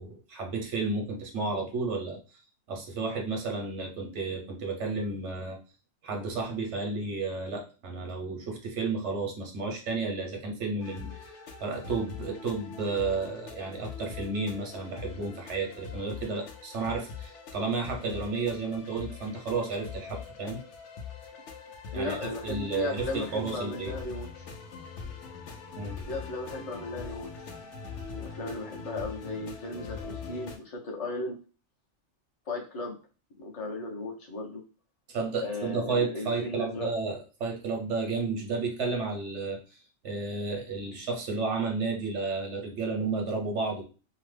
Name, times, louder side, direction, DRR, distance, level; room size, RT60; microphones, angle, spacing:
voice 1, 0.0-2.2 2.7-5.6 6.0-20.6 21.9-23.9 25.8-26.0 35.1-39.6 40.0-43.8, right 4 dB, 80° right, 2 dB, 1.1 m, -32 dB
sound 1, 10.8-30.6, left 5 dB, 90° left, 0.9 m, -42 dB
voice 2, 21.9-24.5 26.1-27.5 28.1-31.4 32.5-33.0 33.4-34.6 35.4-36.9, left 2 dB, 35° left, -1 dB, 0.7 m, -36 dB
2.8 x 2.2 x 3.2 m, 0.34 s
omnidirectional pair, 1.2 m